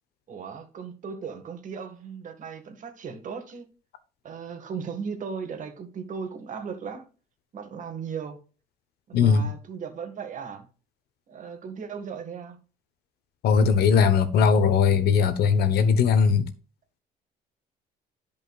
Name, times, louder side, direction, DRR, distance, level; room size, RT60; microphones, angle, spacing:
voice 1, 0.3-3.7 4.2-7.1 7.5-8.4 9.1-10.7 11.3-12.6, right 6 dB, 50° right, 1.9 m, -37 dB
voice 2, 9.1-9.5 13.4-16.5, left 6 dB, 70° left, 1.2 m, -19 dB
13.0 x 5.3 x 2.4 m
cardioid pair, 110°, 17 cm